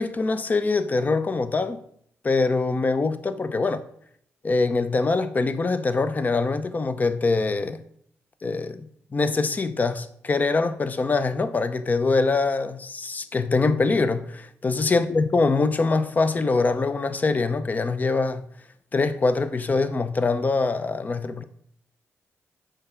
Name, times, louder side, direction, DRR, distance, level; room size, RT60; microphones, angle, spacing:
voice 1, 0.0-1.8 2.2-3.8 4.4-7.8 8.4-8.9 9.1-18.5 18.9-21.4, left 3 dB, 30° left, 0.6 m, -23 dB
6.4 x 3.9 x 5.7 m
cardioid pair, 95°, 5 cm